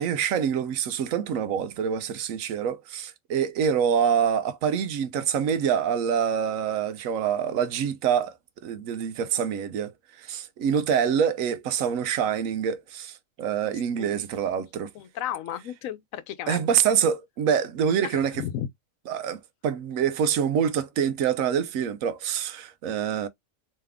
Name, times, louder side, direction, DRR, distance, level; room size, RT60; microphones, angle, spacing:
voice 1, 0.0-8.3 8.6-14.9 16.5-18.4 19.1-23.3, right 8 dB, 80° right, 1.0 m, -26 dB
voice 2, 14.9-16.6 18.0-18.7, left 11 dB, 85° left, 1.0 m, -34 dB
3.4 x 3.2 x 3.5 m
omnidirectional pair, 1.4 m